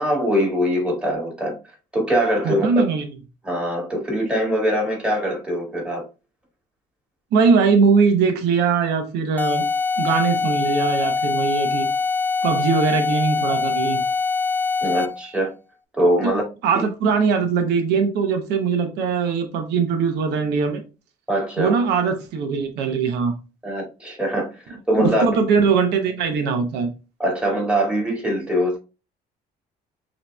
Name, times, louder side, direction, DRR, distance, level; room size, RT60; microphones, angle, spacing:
voice 1, 0.0-1.5 1.9-2.7 3.4-6.0 14.8-15.5 15.9-16.4 16.7-16.8 21.3-21.8 23.6-25.2 27.2-28.8, equal, 5° right, 1.9 m, -22 dB
voice 2, 2.4-3.1 7.3-9.7 10.0-11.9 12.4-14.0 16.2-16.3 16.6-20.8 21.6-23.3 25.0-26.9, right 5 dB, 80° right, 0.7 m, -21 dB
sound 1, 9.4-15.3, left 4 dB, 10° left, 0.4 m, -23 dB
6.2 x 2.9 x 2.2 m
cardioid pair, 110°, 17 cm